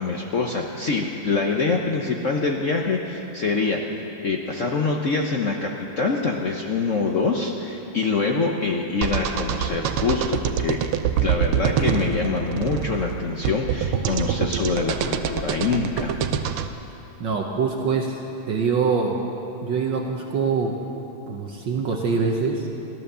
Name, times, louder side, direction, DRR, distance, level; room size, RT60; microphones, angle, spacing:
voice 1, 0.0-3.8 4.2-10.8 11.2-16.2, left 4 dB, 60° left, 1 dB, 0.8 m, -25 dB
sound 1, 9.0-16.7, right 8 dB, 85° right, 1.6 m, -25 dB
voice 2, 17.2-18.2 18.5-19.2 19.6-20.7 21.3-22.7, right 5 dB, 60° right, 1 dB, 1.6 m, -24 dB
15.5 x 12.5 x 6.8 m, 2.9 s
omnidirectional pair, 2.4 m